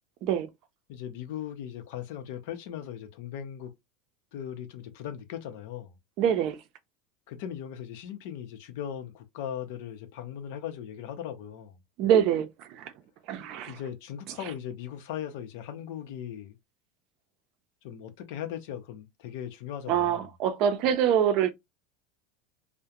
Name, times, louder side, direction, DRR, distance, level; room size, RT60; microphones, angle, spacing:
voice 1, 0.9-3.7 4.3-5.9 7.3-11.7 13.7-16.6 17.8-20.3, left 9 dB, 70° left, 0.6 m, -38 dB
voice 2, 6.2-6.6 12.0-12.9 13.3-13.8 19.9-21.5, right 9 dB, 55° right, 0.5 m, -25 dB
2.3 x 2.1 x 2.8 m
supercardioid pair, 125°, 0 cm